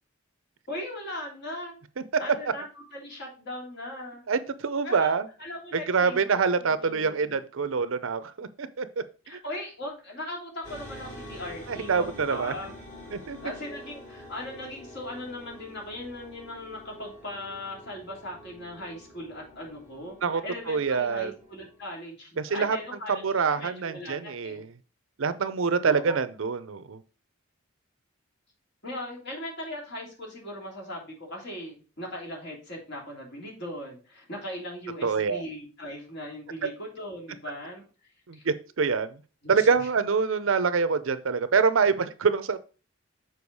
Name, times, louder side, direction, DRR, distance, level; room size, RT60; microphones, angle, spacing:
voice 1, 0.7-1.8 2.2-2.6 2.9-4.2 4.8-5.1 5.4-7.3 9.2-12.7 13.4-23.2 23.6-24.6 25.8-26.2 28.8-37.8 38.3-38.4 39.4-39.7, left 1 dB, 55° left, 3.1 m, -39 dB
voice 2, 4.3-5.3 5.7-9.0 9.3-9.4 11.7-12.5 13.1-13.4 20.2-20.4 20.7-21.3 22.4-22.8 23.1-24.7 25.2-27.0 35.0-35.4 38.3-39.2 39.5-42.6, right 5 dB, 70° right, 0.6 m, -25 dB
sound 1, 10.6-21.9, left 1 dB, 35° left, 2.5 m, -46 dB
7.0 x 4.6 x 4.7 m
head